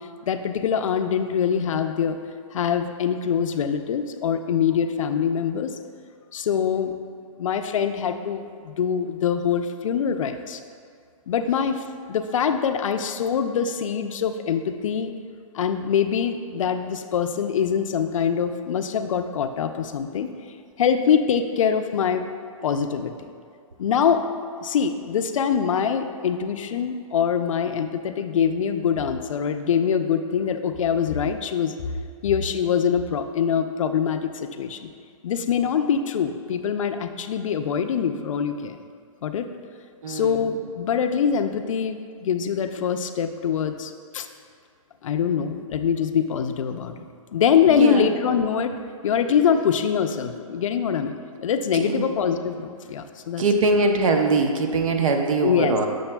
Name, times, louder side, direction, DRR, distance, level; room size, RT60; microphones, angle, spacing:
voice 1, 0.3-2.2 2.5-5.7 6.3-6.9 7.4-10.6 11.3-15.1 15.5-20.3 20.8-22.2 22.6-23.1 23.8-24.2 24.6-31.8 32.2-34.9 35.2-38.8 39.2-39.5 40.1-44.3 45.0-46.9 47.3-48.8 49.0-51.2 51.4-53.4 55.4-55.8, left 7 dB, 65° left, 7 dB, 0.4 m, -24 dB
voice 2, 40.0-40.5 47.7-48.1 51.7-52.1 53.4-55.9, right 3 dB, 65° right, 4 dB, 0.7 m, -22 dB
6.9 x 6.4 x 2.2 m, 2.2 s
hypercardioid pair, 160°, 18 cm